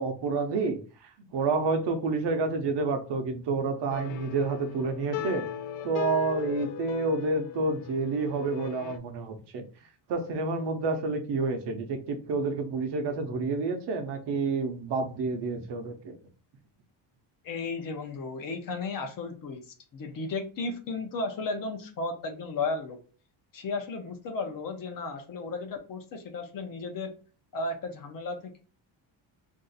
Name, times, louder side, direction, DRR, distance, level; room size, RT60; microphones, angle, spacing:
voice 1, 0.0-5.5 5.8-9.6 10.1-16.2, right 3 dB, 55° right, 6 dB, 0.7 m, -29 dB
sound 1, 3.9-9.0, left 8 dB, 85° left, 0.6 m, -38 dB
voice 2, 17.4-19.6 19.9-23.0 23.5-27.1 27.5-28.6, left 3 dB, 45° left, 5 dB, 0.6 m, -34 dB
2.6 x 2.4 x 3.9 m, 0.38 s
cardioid pair, 170°, 48 cm